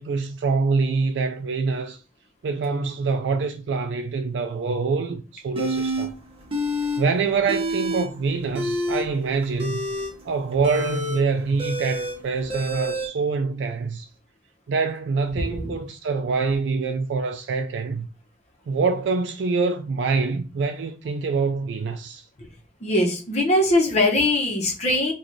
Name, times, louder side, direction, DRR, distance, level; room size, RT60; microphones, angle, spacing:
voice 1, 0.0-2.0 2.4-6.1 7.0-9.8 10.3-14.1 14.7-18.1 18.7-22.3, right 4 dB, 90° right, 0.3 m, -25 dB
sound 1, 5.6-6.1 6.5-7.0 7.3-8.1 8.4-13.1, equal, 30° right, 0.9 m, -27 dB
voice 2, 15.4-15.8 22.4-22.5 22.8-25.1, left 1 dB, 40° left, 0.8 m, -21 dB
3.9 x 2.3 x 3.1 m
head